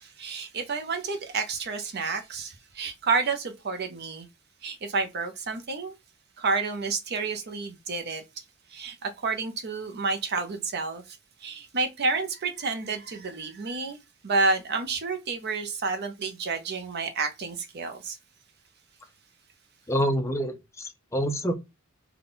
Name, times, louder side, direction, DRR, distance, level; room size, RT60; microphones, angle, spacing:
voice 1, 0.0-4.3 4.6-5.9 6.4-8.2 8.7-14.0 14.2-18.2, right 4 dB, 50° right, 0.6 m, -30 dB
voice 2, 19.9-21.5, equal, 15° left, 0.5 m, -27 dB
3.8 x 2.3 x 3.7 m
head